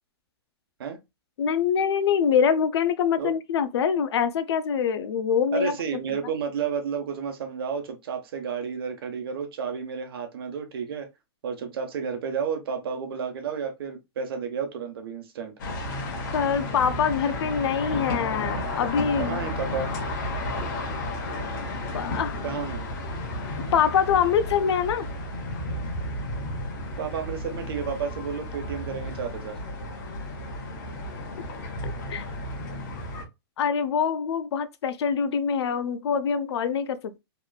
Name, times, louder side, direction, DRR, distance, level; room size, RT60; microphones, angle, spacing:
voice 1, 1.4-5.7 16.3-19.4 21.9-22.4 23.7-25.1 31.8-32.2 33.6-37.2, left 7 dB, 90° left, 0.5 m, -24 dB
voice 2, 5.5-11.1 11.4-15.5 19.2-19.9 22.4-22.9 27.0-29.6, right 6 dB, 65° right, 0.8 m, -31 dB
sound 1, 15.6-33.2, left 1 dB, 50° left, 0.8 m, -33 dB
2.9 x 2.4 x 2.2 m
supercardioid pair, 170°, 13 cm